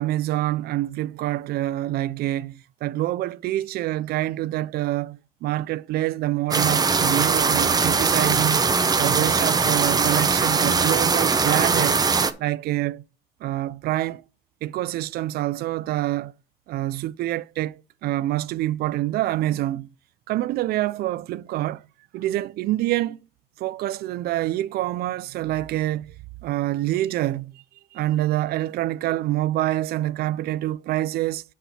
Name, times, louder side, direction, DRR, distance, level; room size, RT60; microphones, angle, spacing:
voice 1, 0.0-8.6 9.0-12.0 12.4-13.0 13.4-14.2 14.6-16.3 16.7-19.9 20.3-21.8 22.1-23.2 23.6-26.1 26.4-27.6 27.9-31.4, right 15 dB, 70° right, 0.4 m, -26 dB
sound 1, 6.5-12.3, right 5 dB, 25° right, 0.7 m, -21 dB
7.3 x 4.2 x 5.6 m
cardioid pair, 110°, 17 cm